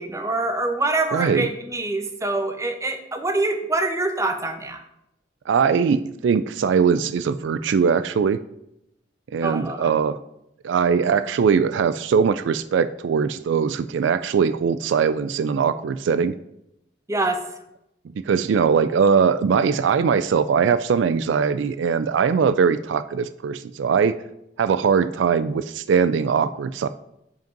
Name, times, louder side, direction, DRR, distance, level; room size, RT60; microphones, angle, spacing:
voice 1, 0.0-4.8 9.4-9.9 17.1-17.4, right 2 dB, 15° right, 7 dB, 0.8 m, -25 dB
voice 2, 1.1-1.5 5.5-8.4 9.3-10.2 10.6-16.3 18.1-24.2 24.6-26.9, right 6 dB, 75° right, 13 dB, 0.3 m, -21 dB
7.8 x 5.2 x 5.2 m, 0.83 s
head